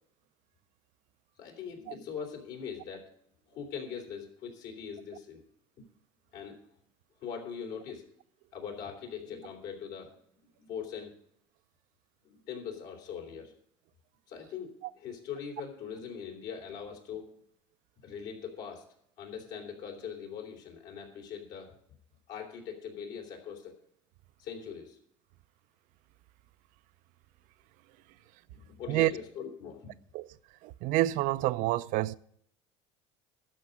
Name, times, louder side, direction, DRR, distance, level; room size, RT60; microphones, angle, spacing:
voice 1, 1.4-3.1 3.5-5.4 6.3-6.6 7.2-8.0 8.5-10.1 10.6-11.1 12.2-13.5 14.3-17.3 18.0-18.8 19.2-21.7 22.3-23.7 24.4-25.0 28.8-29.9, left 7 dB, 65° left, 3.4 m, -41 dB
voice 2, 30.6-32.2, right 16 dB, 65° right, 0.5 m, -28 dB
12.5 x 5.3 x 8.3 m
supercardioid pair, 105°, 15 cm